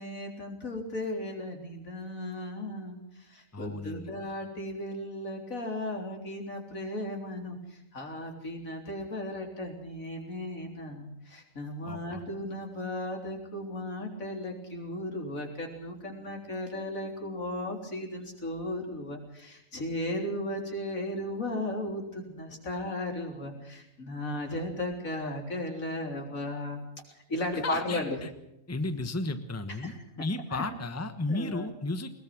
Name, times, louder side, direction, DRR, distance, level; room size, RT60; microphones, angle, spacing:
voice 1, 0.0-26.8 27.1-28.2 29.7-30.0 30.5-30.7 31.3-31.7, left 1 dB, 80° left, 2 dB, 4.1 m, -36 dB
voice 2, 3.5-4.1 11.8-12.2 27.6-28.3 28.7-32.1, left 2 dB, 10° left, 9 dB, 1.2 m, -34 dB
21.0 x 20.0 x 6.2 m, 0.85 s
omnidirectional pair, 1.4 m